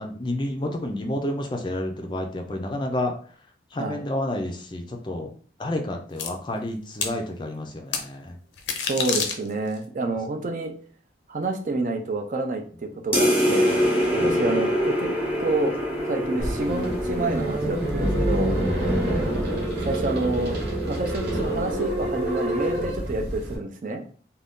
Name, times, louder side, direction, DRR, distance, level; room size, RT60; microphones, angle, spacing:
voice 1, 0.0-3.1 3.7-5.3 5.6-8.3 14.1-14.4, left 1 dB, 25° left, 3 dB, 0.4 m, -30 dB
sound 1, 6.2-6.3 7.0-7.2 7.9-8.0 8.6-9.8, left 6 dB, 85° left, 0.5 m, -27 dB
voice 2, 8.8-10.7 11.3-15.1 15.4-15.8 16.1-18.6 19.8-20.6 20.9-24.0, right 2 dB, 45° right, 4 dB, 0.4 m, -28 dB
sound 2, 13.1-18.0, equal, 10° right, 0.7 m, -24 dB
sound 3, 16.4-23.6, right 1 dB, 65° right, 1.1 m, -26 dB
2.5 x 2.2 x 3.5 m, 0.43 s
head